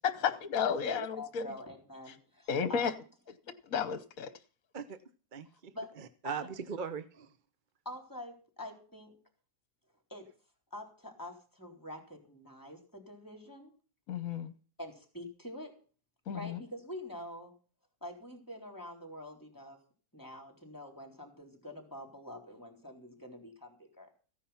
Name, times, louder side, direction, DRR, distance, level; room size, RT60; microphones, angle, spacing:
voice 1, 0.0-1.5 2.5-2.9 3.7-4.3 14.1-14.5 16.3-16.6, left 7 dB, 65° left, 1.3 m, -32 dB
voice 2, 0.9-2.9 5.7-5.9 6.2-6.3 7.9-9.1 10.1-10.3 10.7-13.7 14.8-15.7 16.3-17.5 18.0-19.8 20.1-24.1, left 1 dB, 10° left, 3.7 m, -46 dB
voice 3, 5.3-7.3, right 6 dB, 40° right, 0.8 m, -40 dB
15.5 x 10.0 x 5.8 m
omnidirectional pair, 1.6 m